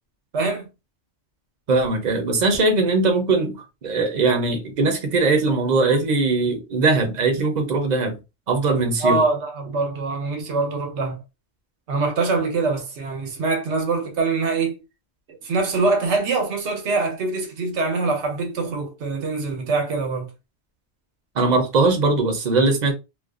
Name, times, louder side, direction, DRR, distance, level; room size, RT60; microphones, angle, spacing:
voice 1, 0.3-0.7 9.0-11.2 11.9-14.8 15.3-20.3, right 3 dB, 90° right, 1.0 m, -24 dB
voice 2, 1.7-8.2 8.5-9.2 21.4-22.9, right 3 dB, 50° right, 0.6 m, -20 dB
2.5 x 2.2 x 2.3 m
omnidirectional pair, 1.1 m